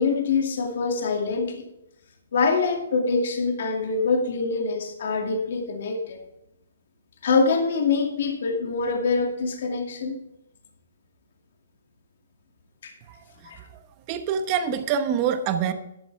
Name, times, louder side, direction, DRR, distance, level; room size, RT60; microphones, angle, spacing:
voice 1, 0.0-1.6 2.3-6.2 7.2-10.2 12.8-12.9 13.4-13.6, left 4 dB, 55° left, 3 dB, 2.3 m, -24 dB
voice 2, 14.1-15.7, right 7 dB, 25° right, 9 dB, 0.9 m, -25 dB
12.0 x 11.5 x 3.4 m, 0.86 s
hypercardioid pair, 170°, 0 cm